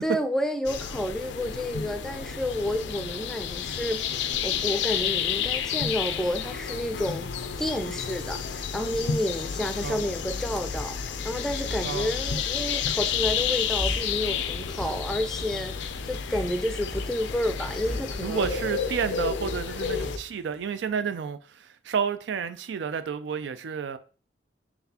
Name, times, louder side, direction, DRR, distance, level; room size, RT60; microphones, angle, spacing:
voice 1, 0.0-7.3 7.6-18.6, equal, 5° left, 0.3 m, -30 dB
sound 1, 0.6-20.2, left 7 dB, 75° left, 0.4 m, -31 dB
sound 2, 10.6-20.6, equal, 65° right, 1.4 m, -39 dB
voice 2, 18.2-24.0, right 6 dB, 90° right, 0.4 m, -30 dB
4.0 x 3.5 x 2.8 m
head